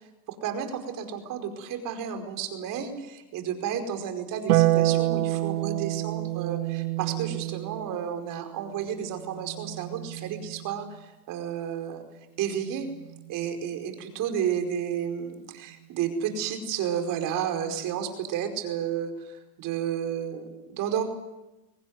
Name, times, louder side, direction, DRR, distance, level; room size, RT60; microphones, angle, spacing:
voice 1, 0.4-12.0 12.4-12.9 13.3-21.1, right 8 dB, 45° right, 6 dB, 5.1 m, -32 dB
Harp, 4.5-11.0 12.6-13.6, right 15 dB, 85° right, 1.6 m, -28 dB
24.5 x 18.5 x 9.7 m, 1.0 s
supercardioid pair, 125°, 45 cm